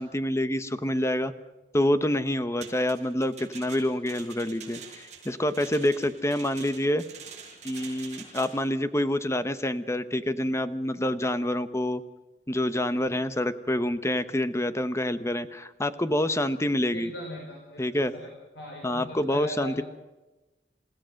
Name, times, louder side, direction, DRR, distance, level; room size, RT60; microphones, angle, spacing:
voice 1, 0.0-1.3 1.7-7.0 7.6-12.0 12.5-17.1 17.8-18.1 18.8-19.8, left 1 dB, 15° left, 12 dB, 1.0 m, -27 dB
sound 1, 2.6-8.7, right 6 dB, 40° right, 6.3 m, -45 dB
voice 2, 16.9-18.3 18.6-19.8, equal, 85° left, 0 dB, 4.7 m, -39 dB
28.5 x 16.0 x 6.5 m, 1.1 s
head